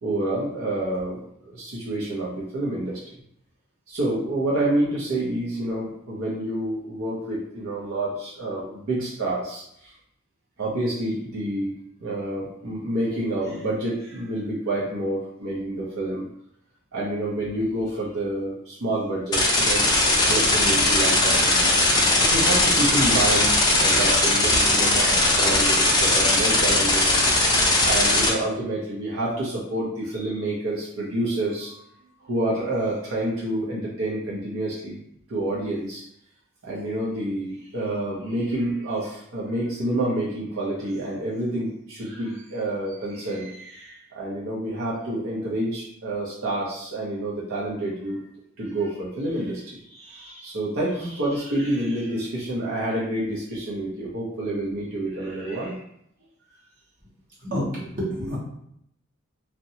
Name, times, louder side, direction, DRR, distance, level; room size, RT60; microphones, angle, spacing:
voice 1, 0.0-3.0 3.9-9.9 10.6-16.2 16.9-21.7 22.2-27.2 27.8-31.8 32.2-35.0 35.3-36.0 36.6-48.2 48.6-55.8, right 1 dB, 75° right, -5 dB, 0.6 m, -28 dB
sound 1, 19.3-28.3, left 2 dB, 20° left, 0.5 m, -19 dB
voice 2, 57.4-58.4, equal, 40° right, -6 dB, 0.8 m, -28 dB
2.7 x 2.1 x 2.7 m, 0.72 s
head